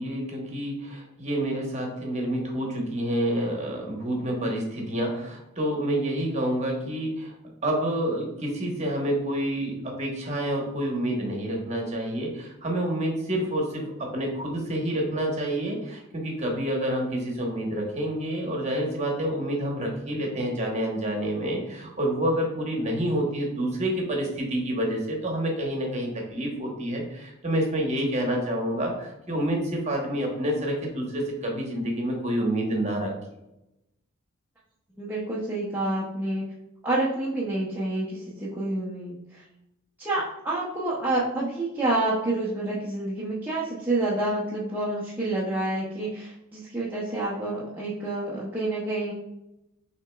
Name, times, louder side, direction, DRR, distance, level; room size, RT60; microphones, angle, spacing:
voice 1, 0.0-7.3 7.6-33.1, right 1 dB, 30° right, 0 dB, 1.0 m, -28 dB
voice 2, 35.0-36.4 36.8-39.4 40.0-49.1, right 2 dB, 10° right, -7 dB, 0.6 m, -28 dB
6.1 x 2.9 x 2.3 m, 0.88 s
head